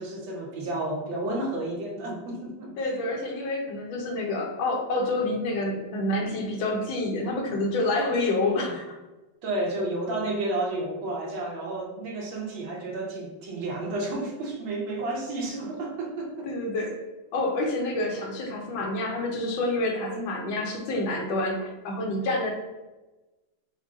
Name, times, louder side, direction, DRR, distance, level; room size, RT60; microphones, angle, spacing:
voice 1, 0.0-2.7 8.3-8.7 9.4-16.5 20.1-20.3, right 2 dB, 80° right, -1 dB, 1.6 m, -31 dB
voice 2, 2.8-8.8 16.5-16.9 17.3-22.5, left 2 dB, 80° left, 1 dB, 1.6 m, -28 dB
5.2 x 2.2 x 3.6 m, 1.1 s
omnidirectional pair, 2.1 m